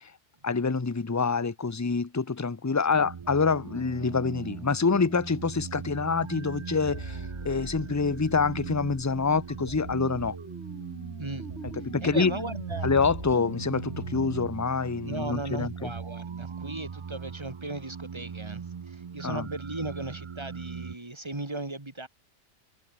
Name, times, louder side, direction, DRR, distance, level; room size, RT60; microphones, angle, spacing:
voice 1, 0.4-10.4 11.8-12.3 12.8-15.9 19.2-19.5, left 4 dB, 15° left, 0.7 m, -26 dB
sound 1, 2.9-21.0, right 6 dB, 40° right, 0.4 m, -40 dB
sound 2, 6.9-14.5, right 2 dB, 65° right, 5.8 m, -41 dB
voice 2, 12.0-12.9 15.0-22.1, right 2 dB, 25° right, 2.3 m, -37 dB
omnidirectional pair, 1.2 m